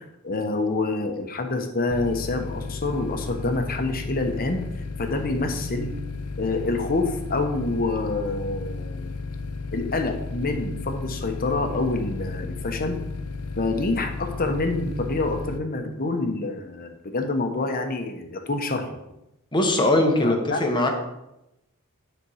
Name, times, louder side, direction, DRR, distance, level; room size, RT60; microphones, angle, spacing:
voice 1, 0.0-4.6 5.0-5.9 6.4-9.2 9.7-13.0 13.6-18.9 20.2-20.6, left 2 dB, 40° left, 5 dB, 1.0 m, -27 dB
sound 1, 1.9-15.6, left 4 dB, 85° left, 0.6 m, -34 dB
voice 2, 19.5-20.9, left 1 dB, 20° left, 3 dB, 1.2 m, -21 dB
9.8 x 4.4 x 4.8 m, 0.89 s
head